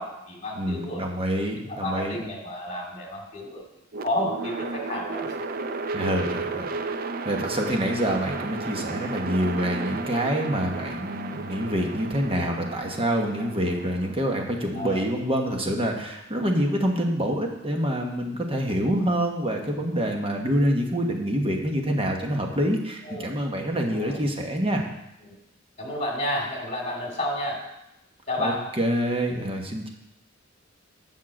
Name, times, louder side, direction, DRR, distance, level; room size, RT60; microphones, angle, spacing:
voice 1, 0.0-1.0 1.6-3.6 4.0-5.3 12.3-12.6 14.7-15.1 23.0-23.3 23.9-24.2 25.2-25.4 25.8-27.6 28.3-28.7, left 1 dB, 35° left, -1 dB, 2.4 m, -31 dB
voice 2, 0.5-2.2 5.9-6.9 7.2-24.8 28.4-29.9, equal, 30° right, 1 dB, 1.2 m, -26 dB
sound 1, 3.9-16.0, right 3 dB, 45° right, 0.5 m, -34 dB
7.3 x 5.7 x 7.5 m, 0.87 s
head